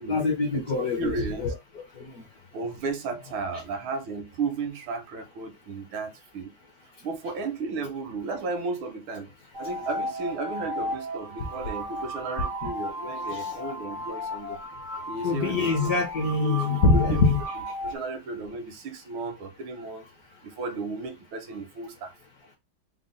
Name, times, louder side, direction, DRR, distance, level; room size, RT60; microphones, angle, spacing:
voice 1, 0.1-1.5 2.0-2.1 12.6-12.7 13.3-13.5 15.2-17.4, left 3 dB, 60° left, 1.0 m, -24 dB
voice 2, 1.0-1.5 2.5-6.5 7.0-9.3 9.6-14.6 15.1-15.9 16.4-16.6 16.9-17.3 17.8-20.1 20.4-22.1, right 4 dB, 80° right, 1.5 m, -34 dB
sound 1, 9.5-18.0, equal, 65° right, 0.5 m, -34 dB
4.2 x 2.0 x 3.7 m
omnidirectional pair, 2.3 m